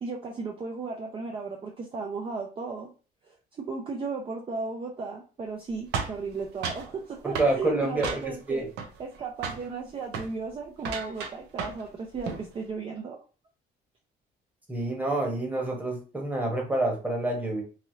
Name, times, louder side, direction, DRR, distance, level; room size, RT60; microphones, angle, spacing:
voice 1, 0.0-2.9 3.6-8.7 9.0-13.2, right 4 dB, 30° right, 1 dB, 0.5 m, -35 dB
sound 1, 5.9-6.9 7.3-7.6 8.0-8.5 8.8-9.2 9.4-9.7 10.1-10.3 10.8-11.9 12.1-12.5, right 6 dB, 85° right, 0.7 m, -33 dB
voice 2, 7.2-8.2 8.5-8.7 14.7-17.6, right 2 dB, 10° right, 0 dB, 1.1 m, -27 dB
3.2 x 2.7 x 2.7 m, 0.35 s
cardioid pair, 110°, 17 cm